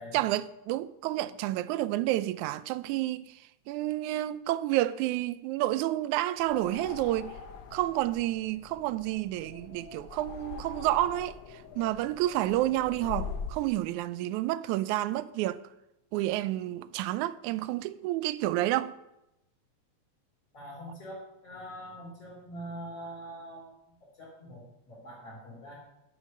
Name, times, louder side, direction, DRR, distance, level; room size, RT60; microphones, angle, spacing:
voice 1, 0.1-3.4 3.7-7.3 7.7-15.6 16.1-18.9, right 15 dB, 85° right, 1.9 m, -30 dB
sound 1, 6.4-13.7, left 6 dB, 85° left, 1.0 m, -43 dB
voice 2, 20.5-23.7 24.0-25.8, equal, 55° left, 4.2 m, -44 dB
11.0 x 6.7 x 6.4 m
omnidirectional pair, 3.4 m